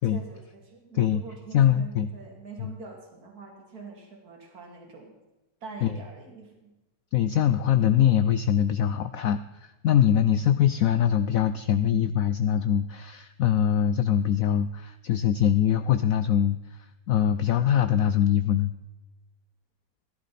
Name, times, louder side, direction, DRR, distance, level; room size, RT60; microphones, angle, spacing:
voice 1, 0.1-5.1 5.6-6.7, right 3 dB, 50° right, 1 dB, 3.0 m, -44 dB
voice 2, 1.5-2.1 2.6-2.7 5.8-6.0 7.1-18.7, left 10 dB, 80° left, 11 dB, 0.7 m, -23 dB
17.5 x 11.5 x 4.2 m, 1.1 s
omnidirectional pair, 2.0 m